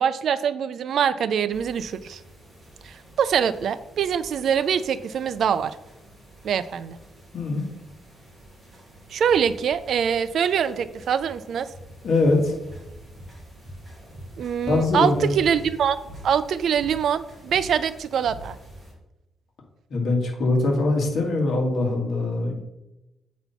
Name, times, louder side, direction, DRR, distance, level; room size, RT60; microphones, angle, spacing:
voice 1, 0.0-2.2 2.8-5.7 6.4-7.0 9.1-11.7 14.4-16.0 16.2-18.6, right 8 dB, 60° right, 14 dB, 0.4 m, -24 dB
sound 1, 1.5-18.9, right 1 dB, 10° right, 2.3 m, -45 dB
voice 2, 7.3-7.7 12.0-12.5 14.7-15.4 19.9-22.6, left 2 dB, 50° left, 0 dB, 2.0 m, -22 dB
7.9 x 4.3 x 5.7 m, 0.98 s
cardioid pair, 150°, 0 cm